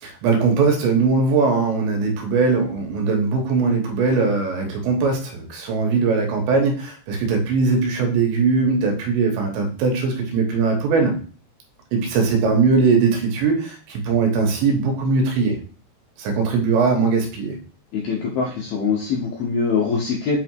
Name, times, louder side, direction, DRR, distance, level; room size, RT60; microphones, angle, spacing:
voice 1, 0.0-11.2 11.9-15.6 16.2-17.6, right 4 dB, 75° right, 2 dB, 3.1 m, -20 dB
voice 2, 17.9-20.4, left 5 dB, 75° left, -2 dB, 2.2 m, -23 dB
8.1 x 3.4 x 4.6 m, 0.40 s
omnidirectional pair, 5.8 m